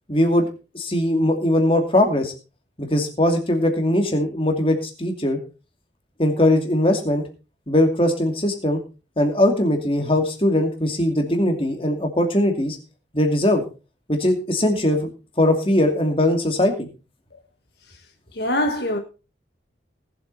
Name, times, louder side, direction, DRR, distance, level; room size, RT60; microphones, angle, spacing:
voice 1, 0.1-0.5 0.7-2.3 2.8-5.4 6.2-7.2 7.7-8.8 9.2-12.8 13.1-13.6 14.1-15.1 15.4-16.9, left 1 dB, 30° left, 2.5 m, -20 dB
voice 2, 18.3-19.0, left 1 dB, 60° left, 1.4 m, -23 dB
19.0 x 7.9 x 4.1 m
head